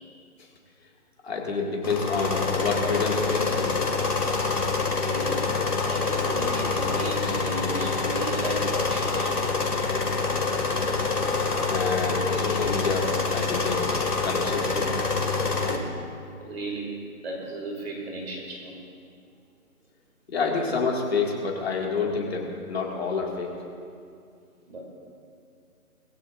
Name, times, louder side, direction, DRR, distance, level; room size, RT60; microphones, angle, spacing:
voice 1, 1.2-3.8 11.7-14.9 20.3-23.5, left 4 dB, 45° left, -1 dB, 2.4 m, -28 dB
sound 1, 1.8-15.8, left 4 dB, 90° left, 2.5 m, -26 dB
voice 2, 5.0-5.4 5.9-9.3 15.7-15.9 16.4-18.7 24.7-24.8, right 2 dB, 40° right, -1 dB, 2.8 m, -35 dB
21.5 x 15.5 x 2.7 m, 2.4 s
figure-of-eight pair, 160°, 45 cm